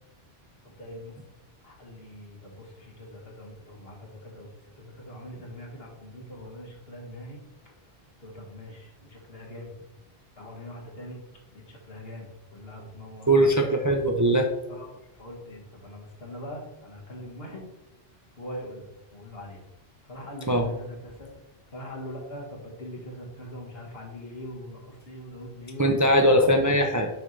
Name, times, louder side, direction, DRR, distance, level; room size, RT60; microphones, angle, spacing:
voice 1, 0.6-1.1 1.6-4.5 4.8-7.4 8.2-9.7 10.4-11.2 11.5-13.7 14.7-17.7 18.4-19.7 20.0-21.3 21.7-25.9 26.3-26.5, left 1 dB, 70° left, -1 dB, 1.8 m, -42 dB
voice 2, 13.3-14.5 20.5-20.7 25.8-27.1, right 1 dB, 25° right, 3 dB, 0.4 m, -20 dB
6.9 x 5.4 x 3.2 m, 0.99 s
omnidirectional pair, 1.0 m